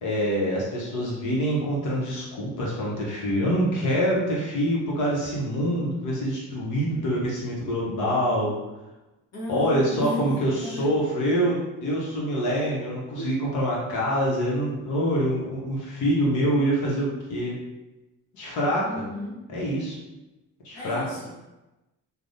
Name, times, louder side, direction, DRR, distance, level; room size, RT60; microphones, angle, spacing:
voice 1, 0.0-8.5 9.5-17.5 18.3-19.1 19.5-20.0 20.6-21.0, equal, 85° left, -4 dB, 1.0 m, -25 dB
voice 2, 9.3-10.9 18.8-19.4 20.7-21.3, left 1 dB, 60° left, -5 dB, 1.2 m, -34 dB
3.4 x 2.3 x 2.7 m, 1.0 s
cardioid pair, 90°, 30 cm